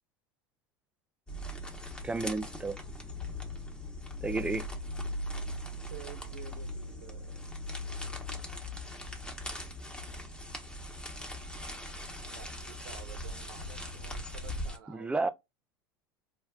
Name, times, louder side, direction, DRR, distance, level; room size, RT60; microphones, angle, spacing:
sound 1, 1.3-14.8, left 1 dB, 10° left, 1.0 m, -40 dB
voice 1, 2.0-2.8 4.2-4.7 14.9-15.3, right 3 dB, 10° right, 0.4 m, -31 dB
voice 2, 5.9-7.4 12.2-15.3, right 8 dB, 65° right, 0.9 m, -51 dB
3.7 x 2.2 x 2.3 m
hypercardioid pair, 80°, 12 cm